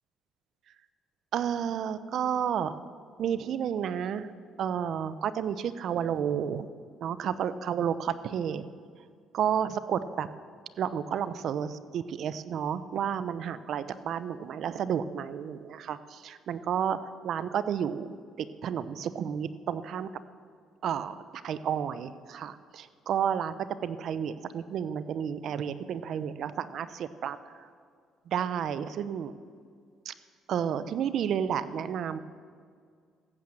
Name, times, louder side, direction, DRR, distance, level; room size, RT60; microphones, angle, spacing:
voice 1, 1.3-2.8 3.2-4.3 4.6-6.7 7.0-8.6 9.3-10.3 10.8-17.0 17.2-20.1 20.8-21.2 21.4-23.6 23.8-27.4 28.3-29.3 30.0-30.1 30.5-32.2, right 8 dB, 65° right, 14 dB, 0.7 m, -31 dB
14.5 x 8.9 x 7.6 m, 2.1 s
cardioid pair, 90°, 0 cm